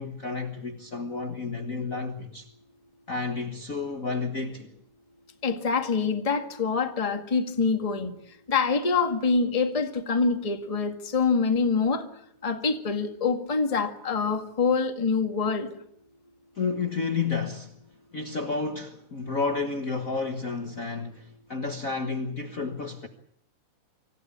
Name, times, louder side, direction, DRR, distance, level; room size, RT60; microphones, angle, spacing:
voice 1, 0.0-2.5 3.1-4.7 16.6-17.7 18.1-23.1, left 4 dB, 80° left, 0.7 m, -31 dB
voice 2, 5.4-8.1 8.5-12.1 12.4-15.7, left 4 dB, 25° left, 0.7 m, -25 dB
25.5 x 16.0 x 8.7 m
omnidirectional pair, 3.9 m